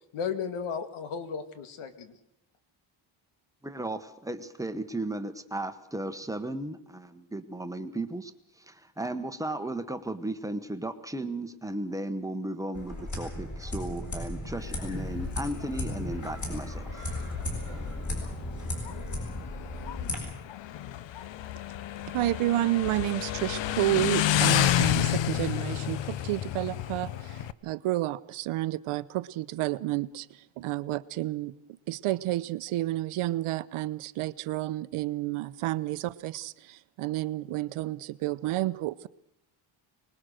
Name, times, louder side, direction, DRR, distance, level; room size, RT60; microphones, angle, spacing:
voice 1, 0.1-2.1, left 6 dB, 80° left, 2.3 m, -34 dB
voice 2, 3.6-17.1, right 1 dB, 5° right, 1.0 m, -35 dB
sound 1, 12.7-20.2, left 1 dB, 35° left, 7.3 m, -35 dB
Motorcycle, 14.6-27.5, left 12 dB, 65° left, 0.9 m, -31 dB
voice 3, 22.1-31.5 31.9-39.1, right 15 dB, 90° right, 0.9 m, -30 dB
25.0 x 20.5 x 6.4 m
cardioid pair, 155°, 49 cm